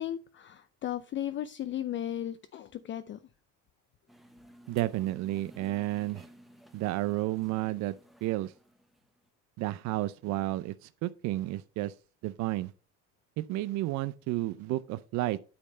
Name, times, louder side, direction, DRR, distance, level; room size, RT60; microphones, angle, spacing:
voice 1, 0.0-3.2, left 11 dB, 35° left, 0.5 m, -35 dB
sound 1, 4.1-9.3, equal, ahead, 0.8 m, -56 dB
voice 2, 4.7-6.2 6.7-8.0 8.2-8.5 9.6-11.9 12.2-12.7 13.4-15.4, right 16 dB, 60° right, 0.5 m, -31 dB
8.6 x 3.2 x 6.6 m
supercardioid pair, 100°, 33 cm